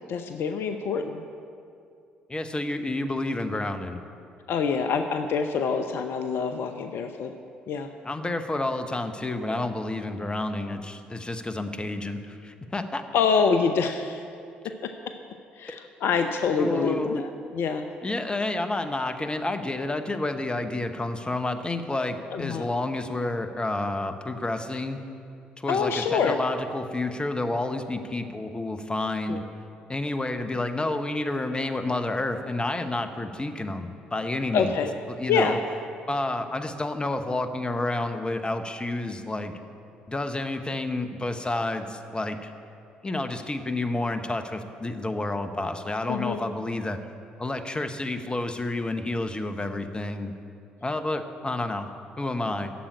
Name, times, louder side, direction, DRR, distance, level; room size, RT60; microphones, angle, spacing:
voice 1, 0.1-1.2 4.5-7.3 7.7-7.9 9.5-9.6 13.1-14.2 14.8-14.9 15.6-17.9 22.3-22.7 25.7-26.4 29.3-29.4 34.5-34.9 35.3-35.6 46.1-46.4, left 5 dB, 55° left, 7 dB, 0.6 m, -26 dB
voice 2, 2.3-4.0 8.0-13.0 15.7-15.8 16.1-16.3 16.6-17.2 18.0-25.0 25.6-29.4 29.9-34.8 35.1-35.6 36.1-39.6 40.1-42.5 43.0-47.0 47.4-50.3 50.8-51.9 52.2-52.7, left 2 dB, 20° left, 7 dB, 1.1 m, -30 dB
11.5 x 7.5 x 9.6 m, 2.5 s
figure-of-eight pair, 45°, 5 cm